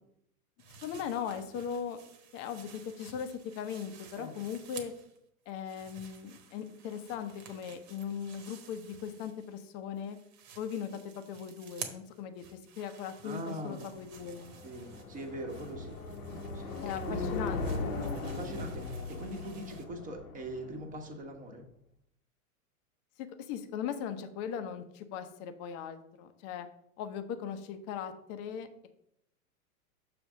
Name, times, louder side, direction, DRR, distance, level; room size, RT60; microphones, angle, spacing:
sound 1, 0.6-5.2 5.5-9.7 10.0-19.8, right 6 dB, 45° right, 1.3 m, -51 dB
voice 1, 0.8-2.0 2.3-4.9 5.5-10.2 10.6-11.0 11.3-14.5 16.8-18.0 23.2-26.7 27.0-28.9, left 8 dB, 35° left, 8 dB, 0.8 m, -39 dB
voice 2, 13.2-13.9 14.6-16.0 16.5-17.7 18.2-21.6, right 1 dB, 20° right, 3 dB, 1.2 m, -42 dB
sound 2, 13.8-21.1, left 3 dB, 85° left, 1.3 m, -38 dB
6.8 x 3.4 x 6.2 m, 0.73 s
hypercardioid pair, 120°, 42 cm